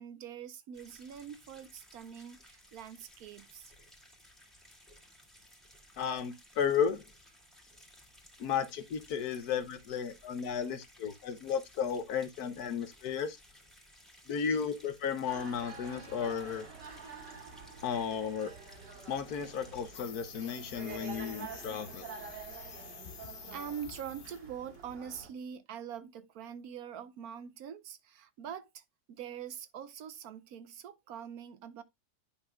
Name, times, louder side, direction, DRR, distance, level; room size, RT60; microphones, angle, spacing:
voice 1, 0.0-3.7 23.5-31.8, right 8 dB, 70° right, 1.0 m, -44 dB
sound 1, 0.7-20.0, equal, ahead, 2.0 m, -59 dB
voice 2, 6.0-7.0 8.4-13.4 14.3-16.7 17.8-18.5 19.1-22.0, left 7 dB, 65° left, 1.2 m, -34 dB
sound 2, 15.3-25.3, right 5 dB, 90° right, 2.5 m, -48 dB
sound 3, 19.9-24.5 24.7-25.0, left 7 dB, 50° left, 0.6 m, -49 dB
10.5 x 5.6 x 2.3 m
omnidirectional pair, 1.8 m